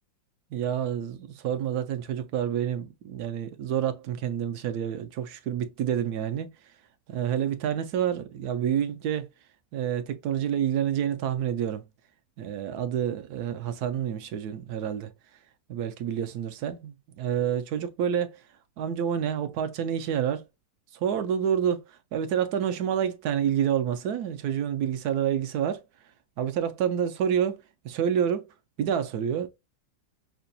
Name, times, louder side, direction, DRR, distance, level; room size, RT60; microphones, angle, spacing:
voice 1, 0.5-6.5 7.1-9.3 9.7-11.8 12.4-15.1 15.7-18.4 18.8-20.4 20.9-25.8 26.4-28.5 28.8-29.5, right 9 dB, 70° right, 0.9 m, -28 dB
5.8 x 2.2 x 2.6 m
omnidirectional pair, 2.0 m